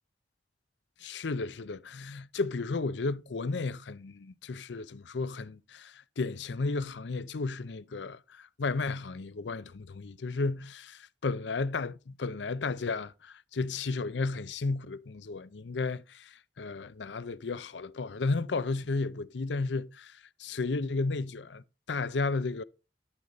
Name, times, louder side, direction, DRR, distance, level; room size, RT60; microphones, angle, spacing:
voice 1, 1.0-22.6, left 3 dB, 85° left, 0.6 m, -33 dB
12.5 x 6.5 x 4.0 m
head